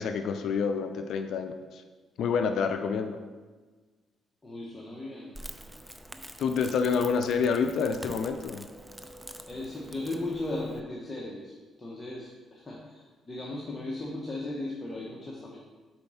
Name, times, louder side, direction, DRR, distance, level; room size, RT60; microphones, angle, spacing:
voice 1, 0.0-1.8 2.2-3.2 6.4-8.7, left 5 dB, 70° left, 7 dB, 0.4 m, -28 dB
voice 2, 4.4-5.3 9.0-9.1 9.5-11.5 11.8-15.6, left 2 dB, 20° left, -4 dB, 1.1 m, -37 dB
Crackle, 5.3-10.8, right 1 dB, 10° right, 0.5 m, -45 dB
4.7 x 4.4 x 5.5 m, 1.3 s
cardioid pair, 90°, 0 cm